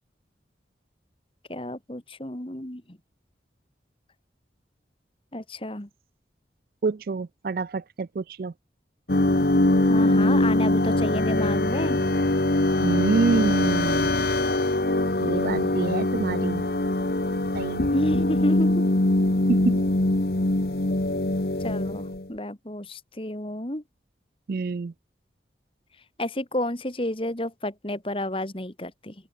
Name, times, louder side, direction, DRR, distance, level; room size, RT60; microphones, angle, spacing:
voice 1, 1.5-2.8 5.3-5.9 9.8-12.0 17.9-18.8 21.6-23.8 26.2-29.1, left 1 dB, 30° left, 2.1 m, -30 dB
voice 2, 6.8-8.5 12.8-14.1 15.2-16.6 17.5-17.8 19.5-19.8 24.5-24.9, right 4 dB, 55° right, 0.4 m, -26 dB
sound 1, 9.1-22.3, left 1 dB, 55° left, 1.4 m, -23 dB
head